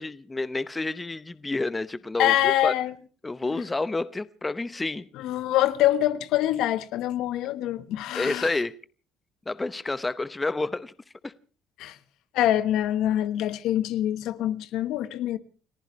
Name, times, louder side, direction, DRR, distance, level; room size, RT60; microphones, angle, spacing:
voice 1, 0.0-2.7 3.2-5.1 8.1-8.7 9.5-10.9 11.2-11.3, left 2 dB, 15° left, 0.8 m, -29 dB
voice 2, 2.2-2.9 3.4-3.6 5.1-8.5 11.8-12.0 12.3-15.4, left 13 dB, 75° left, 1.2 m, -25 dB
30.0 x 15.0 x 3.2 m
cardioid pair, 100°, 0 cm